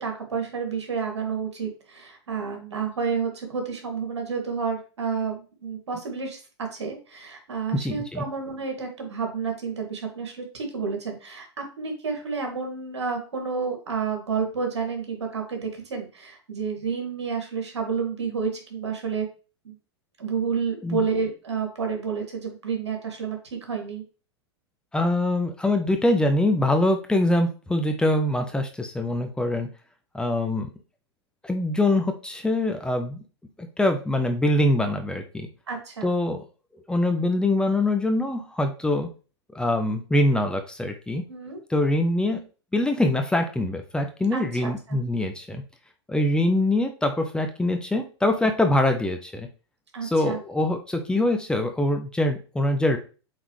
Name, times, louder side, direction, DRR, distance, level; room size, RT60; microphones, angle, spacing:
voice 1, 0.0-6.4 6.7-19.3 19.6-19.7 20.2-24.0 35.7-36.1 41.3-41.6 44.3-45.0 49.9-50.4, right 5 dB, 80° right, 3 dB, 2.3 m, -30 dB
voice 2, 7.7-8.2 20.8-21.0 24.9-29.7 30.1-30.7 31.4-33.2 33.6-35.5 36.0-36.4 36.9-39.1 39.5-41.2 41.7-42.4 42.7-45.6 46.1-49.5 50.0-53.0, left 1 dB, 5° left, 5 dB, 0.9 m, -24 dB
8.0 x 4.0 x 3.3 m, 0.35 s
hypercardioid pair, 100°, 14 cm